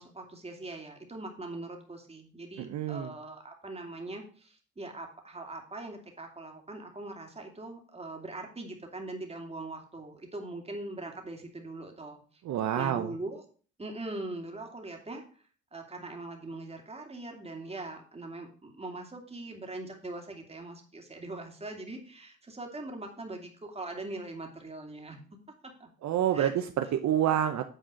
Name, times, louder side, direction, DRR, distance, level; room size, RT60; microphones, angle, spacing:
voice 1, 0.0-12.2 12.8-13.4 13.8-15.4 15.7-25.2 25.6-25.9 26.3-26.5, right 2 dB, 20° right, 3 dB, 2.4 m, -41 dB
voice 2, 2.6-3.1 12.4-13.1 26.0-27.7, right 10 dB, 65° right, 7 dB, 0.8 m, -28 dB
9.1 x 4.3 x 6.2 m, 0.42 s
cardioid pair, 90°, 30 cm